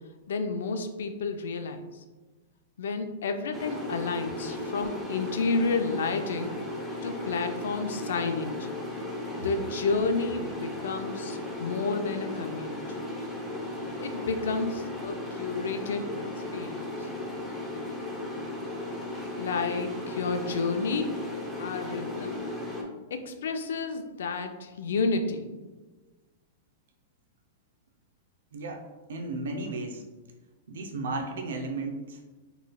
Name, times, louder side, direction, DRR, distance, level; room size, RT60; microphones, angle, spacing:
voice 1, 0.3-1.9 2.8-6.6 7.0-8.7 9.4-12.8 14.0-16.3 16.5-17.1 19.4-21.2 21.6-22.4 23.1-25.5, left 4 dB, 85° left, 7 dB, 0.5 m, -31 dB
sound 1, 3.5-22.8, left 1 dB, 5° right, 0.6 m, -36 dB
voice 2, 28.5-30.0 30.7-32.2, right 2 dB, 85° right, 3 dB, 0.6 m, -34 dB
4.9 x 3.1 x 2.3 m, 1.2 s
supercardioid pair, 165°, 0 cm